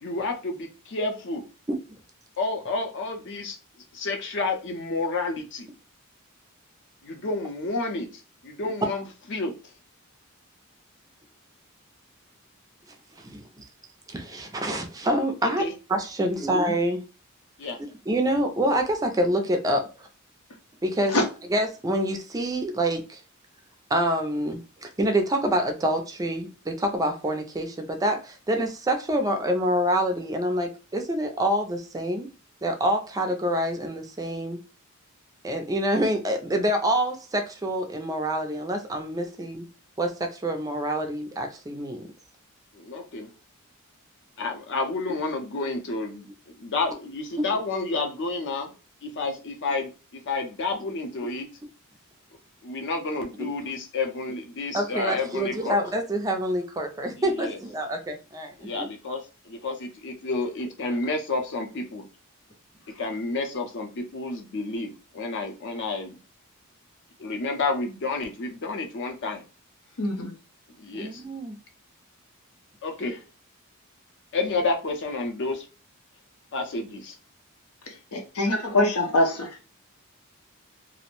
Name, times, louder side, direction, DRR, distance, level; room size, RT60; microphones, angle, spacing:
voice 1, 0.0-1.4 2.4-3.6 3.9-5.7 7.0-9.5 15.6-15.7 16.3-16.5 17.6-17.8 42.7-43.3 44.4-46.3 46.6-48.7 49.0-51.5 52.6-55.8 57.2-57.6 58.6-62.0 63.0-66.2 67.2-69.4 70.8-71.2 72.8-73.2 74.3-75.7 76.5-77.2, left 3 dB, 55° left, 0.6 m, -30 dB
voice 2, 13.2-13.6 14.1-15.6 15.9-17.0 18.1-19.8 20.8-21.2 21.5-23.2 23.9-32.3 32.6-34.6 35.4-39.7 40.0-42.0 53.4-53.7 54.7-58.9 70.9-71.6, right 1 dB, 15° right, 0.3 m, -26 dB
voice 3, 70.0-70.3 78.1-79.5, left 1 dB, 90° left, 0.7 m, -23 dB
2.5 x 2.0 x 2.9 m
head